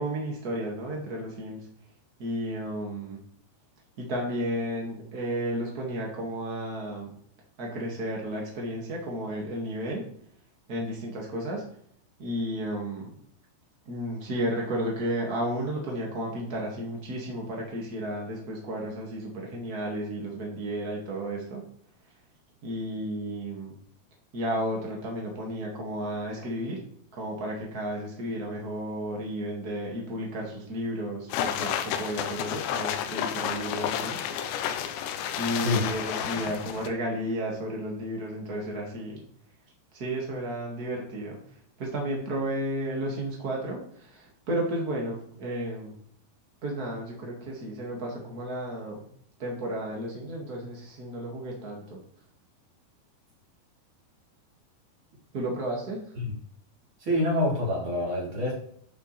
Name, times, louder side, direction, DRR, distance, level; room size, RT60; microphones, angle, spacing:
voice 1, 0.0-1.6 2.2-3.2 4.0-7.1 7.6-10.0 10.7-11.6 12.2-13.1 13.8-21.6 22.6-23.7 24.3-26.8 27.1-34.2 35.4-39.2 39.9-41.4 41.8-46.0 46.6-49.0 49.4-52.0 55.3-56.1, right 1 dB, 70° right, -1 dB, 0.8 m, -33 dB
sound 1, 31.3-36.9, left 9 dB, 80° left, 2.9 m, -31 dB
voice 2, 57.0-58.5, left 1 dB, 30° right, -3 dB, 3.3 m, -26 dB
11.0 x 6.7 x 3.3 m, 0.64 s
omnidirectional pair, 5.3 m